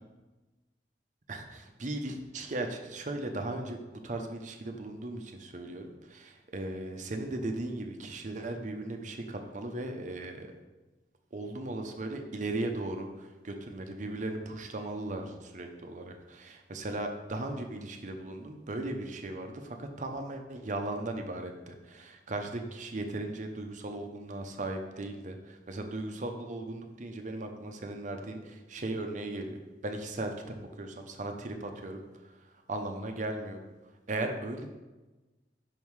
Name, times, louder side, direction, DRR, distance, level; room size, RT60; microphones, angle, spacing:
voice 1, 1.3-3.8 4.0-10.5 11.3-33.6 34.1-34.7, right 2 dB, 45° right, 5 dB, 0.7 m, -37 dB
5.5 x 5.4 x 4.7 m, 1.2 s
head